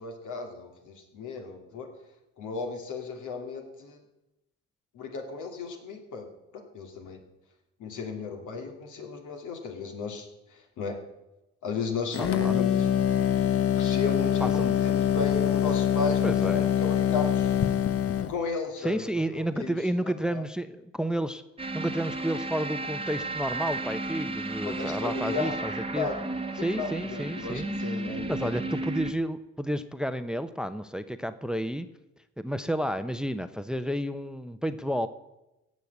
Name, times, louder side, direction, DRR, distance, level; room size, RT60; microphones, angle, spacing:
voice 1, 0.0-1.9 2.4-4.0 4.9-6.3 6.7-7.2 7.8-11.0 11.6-12.9 13.8-17.5 18.1-19.0 19.3-20.4 24.6-26.2 26.6-28.5, left 4 dB, 80° left, 3 dB, 2.6 m, -35 dB
sound 1, 12.1-18.4, left 9 dB, 50° left, 0.9 m, -24 dB
voice 2, 12.2-12.6 14.4-14.8 16.2-16.7 18.8-21.4 21.7-26.1 26.6-27.7 28.3-31.9 32.4-35.1, equal, 5° right, 12 dB, 0.7 m, -31 dB
sound 2, 21.6-29.1, right 2 dB, 20° right, 1.1 m, -33 dB
16.0 x 6.5 x 8.1 m, 0.95 s
cardioid pair, 90°, 30 cm